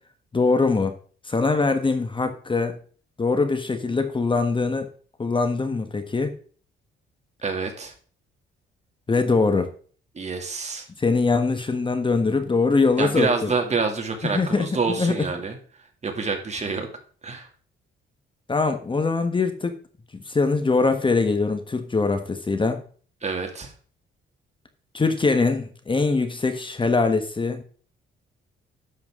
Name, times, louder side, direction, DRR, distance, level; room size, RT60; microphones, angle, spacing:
voice 1, 0.3-1.0 1.3-2.8 3.2-4.9 5.2-6.3 9.1-9.7 11.0-13.5 14.3-15.3 18.5-19.8 20.3-22.8 24.9-27.6, left 4 dB, 25° left, 1.3 m, -22 dB
voice 2, 7.4-7.9 10.1-10.9 13.0-15.6 16.0-16.9 17.2-17.5 23.2-23.7, right 4 dB, 35° right, 2.5 m, -27 dB
11.0 x 7.1 x 3.7 m
cardioid pair, 90°, 20 cm